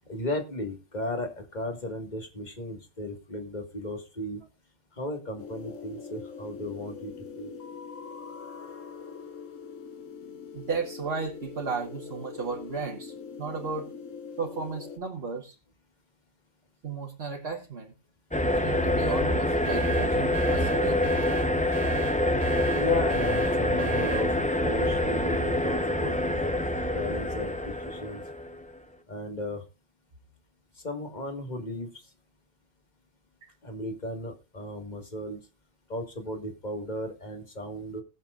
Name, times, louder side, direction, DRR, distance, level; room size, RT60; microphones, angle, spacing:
voice 1, 0.1-4.4 5.0-7.6 22.7-28.2 29.1-29.6 30.8-31.9 33.6-35.4 35.9-38.0, left 1 dB, 35° left, 5 dB, 1.9 m, -35 dB
sound 1, 5.4-15.0, left 6 dB, 80° left, 1.4 m, -42 dB
voice 2, 10.5-13.1 13.4-13.9 14.4-15.5 16.8-17.9 18.5-21.0 22.7-22.8 33.4-33.5, right 5 dB, 55° right, 0 dB, 1.7 m, -34 dB
sound 2, 18.3-28.6, left 1 dB, 5° left, 0.7 m, -26 dB
sound 3, 19.6-24.3, right 9 dB, 80° right, 1.1 m, -38 dB
19.0 x 7.4 x 2.5 m, 0.28 s
omnidirectional pair, 1.3 m